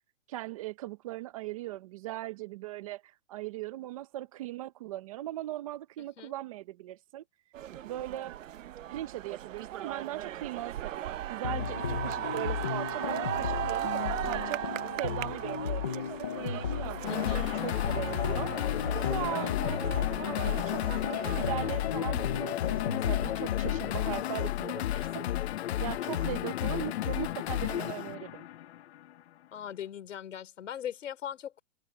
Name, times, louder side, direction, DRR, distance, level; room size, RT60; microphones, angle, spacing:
voice 1, 0.3-7.2 7.8-8.4 8.9-14.6 15.0-18.6 19.0-20.8 21.4-25.2 25.8-28.5, right 15 dB, 30° right, 0.7 m, -39 dB
voice 2, 6.0-6.3 17.1-17.4 29.5-31.6, left 9 dB, 70° left, 4.5 m, -40 dB
sound 1, 7.5-21.8, right 11 dB, 80° right, 1.0 m, -38 dB
sound 2, 11.4-24.2, left 8 dB, 15° left, 0.4 m, -35 dB
sound 3, 17.1-29.1, left 13 dB, 55° left, 0.9 m, -32 dB
hypercardioid pair, 165°, 38 cm